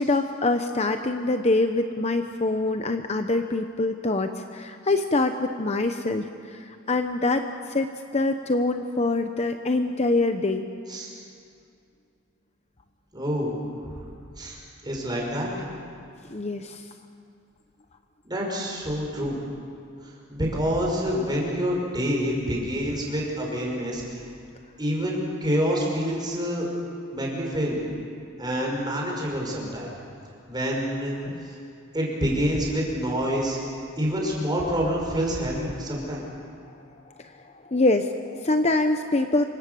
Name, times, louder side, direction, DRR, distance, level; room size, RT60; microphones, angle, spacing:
voice 1, 0.0-10.7 16.3-16.9 31.3-31.4 37.2-39.4, left 2 dB, 30° left, 7 dB, 0.8 m, -25 dB
voice 2, 13.1-13.6 13.8-13.9 14.4-14.6 14.8-15.5 18.2-19.4 20.0-24.2 24.8-26.7 27.1-27.8 28.4-29.9 30.5-31.6 31.9-33.6 34.0-36.2, equal, 20° right, -2 dB, 5.7 m, -27 dB
27.5 x 24.5 x 6.9 m, 2.5 s
head